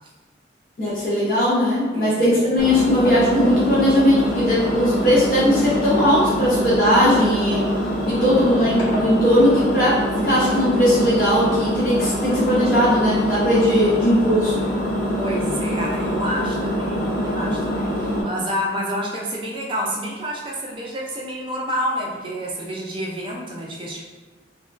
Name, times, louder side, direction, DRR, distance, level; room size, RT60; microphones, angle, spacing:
voice 1, 0.8-7.6 8.1-9.9 10.2-14.6, equal, 50° left, -9 dB, 0.7 m, -18 dB
voice 2, 1.9-2.4 8.1-9.1 15.1-24.0, equal, 25° right, -2 dB, 0.4 m, -29 dB
Engine, 2.6-18.2, equal, 80° left, 0.7 m, -24 dB
2.8 x 2.2 x 2.4 m, 1.3 s
head